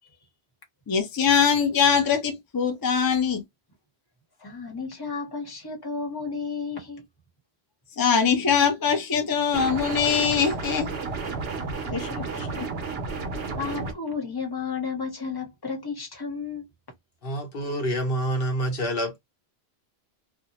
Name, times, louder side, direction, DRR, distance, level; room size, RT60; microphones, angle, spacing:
voice 1, 0.9-3.4 8.0-10.9 11.9-12.1 12.4-12.7, left 6 dB, 40° left, 0.3 m, -22 dB
voice 2, 4.4-7.0 12.1-12.2 13.6-16.7, left 5 dB, 25° left, 0.9 m, -32 dB
sound 1, 9.5-13.9, right 4 dB, 70° right, 1.0 m, -32 dB
voice 3, 17.2-19.2, right 1 dB, 60° left, 1.1 m, -27 dB
2.6 x 2.1 x 2.8 m
omnidirectional pair, 1.1 m